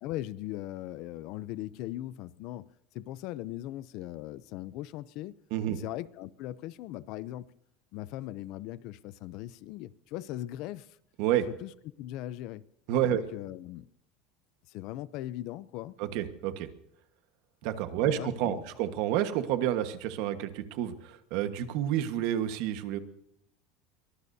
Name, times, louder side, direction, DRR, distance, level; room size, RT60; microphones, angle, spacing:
voice 1, 0.0-2.7 2.9-5.3 5.7-7.5 7.9-11.0 11.5-11.7 12.0-12.6 13.1-13.9 14.7-16.0 18.0-18.6, left 14 dB, 45° left, 0.5 m, -39 dB
voice 2, 12.9-13.2 16.0-16.7 17.6-23.0, right 11 dB, 55° right, 1.4 m, -29 dB
23.0 x 20.0 x 2.7 m
cardioid pair, 175°, 0 cm